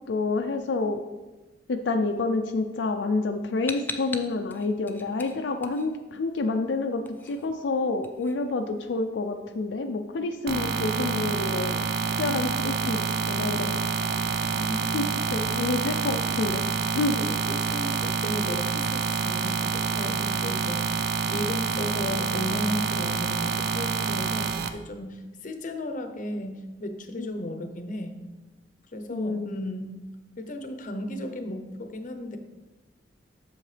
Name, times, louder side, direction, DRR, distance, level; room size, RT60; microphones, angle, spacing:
voice 1, 0.1-1.0 1.7-11.8 12.2-13.8 14.9-16.7 16.9-17.2 27.2-27.3 29.1-29.6, left 3 dB, 75° left, 5 dB, 0.4 m, -28 dB
sound 1, 3.7-6.4 6.7-9.1, left 3 dB, 10° left, 0.4 m, -40 dB
sound 2, 10.5-24.7, right 5 dB, 60° right, 0.5 m, -27 dB
voice 2, 14.6-15.1 17.2-28.2 28.9-30.0 30.4-32.4, left 1 dB, 45° left, 7 dB, 0.7 m, -35 dB
7.5 x 6.3 x 3.3 m, 1.1 s
head